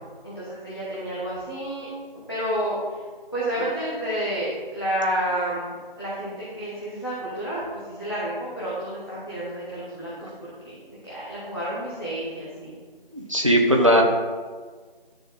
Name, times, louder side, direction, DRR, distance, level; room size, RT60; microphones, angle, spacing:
voice 1, 0.2-3.0 3.3-12.7, right 1 dB, 25° left, -9 dB, 1.5 m, -30 dB
voice 2, 13.1-14.0, equal, 35° right, 0 dB, 1.0 m, -18 dB
11.5 x 6.8 x 3.9 m, 1.5 s
figure-of-eight pair, 175°, 30 cm